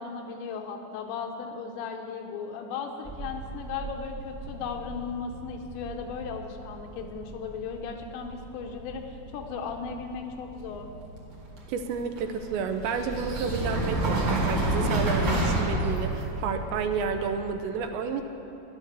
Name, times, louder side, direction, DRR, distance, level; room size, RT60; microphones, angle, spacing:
voice 1, 0.0-10.9, left 5 dB, 80° left, 3 dB, 3.1 m, -36 dB
sound 1, 3.0-17.4, right 2 dB, 60° right, 1.1 m, -31 dB
voice 2, 11.7-18.2, right 5 dB, 85° right, 6 dB, 2.8 m, -30 dB
12.5 x 11.0 x 6.9 m, 3.0 s
omnidirectional pair, 5.3 m